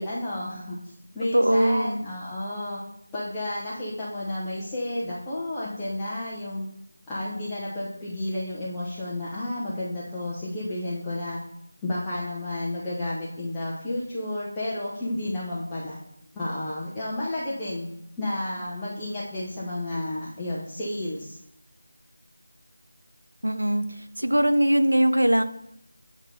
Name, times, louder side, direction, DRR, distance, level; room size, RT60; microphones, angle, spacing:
voice 1, 0.0-2.8 3.1-6.7 7.1-11.4 11.8-16.0 16.3-17.9 18.2-21.4, left 1 dB, 10° left, -10 dB, 0.8 m, -31 dB
voice 2, 1.3-2.0 23.4-25.4, right 1 dB, 75° right, 8 dB, 0.7 m, -21 dB
9.0 x 3.0 x 5.5 m, 0.77 s
figure-of-eight pair, 165°, 0 cm